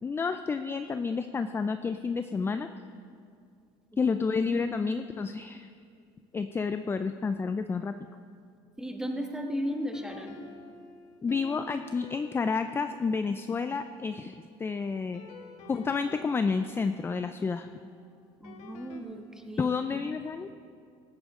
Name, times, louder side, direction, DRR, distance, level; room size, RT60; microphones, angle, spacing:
voice 1, 0.0-2.7 4.0-5.7 6.3-8.0 11.2-15.2 15.7-17.7 19.6-20.5, left 5 dB, 20° left, 9 dB, 0.4 m, -30 dB
voice 2, 8.8-10.4 18.4-19.7, equal, 5° right, 3 dB, 1.5 m, -35 dB
sound 1, 9.6-14.5 15.1-19.0, left 5 dB, 65° left, 1.4 m, -51 dB
17.5 x 13.5 x 3.7 m, 2.3 s
cardioid pair, 110°, 12 cm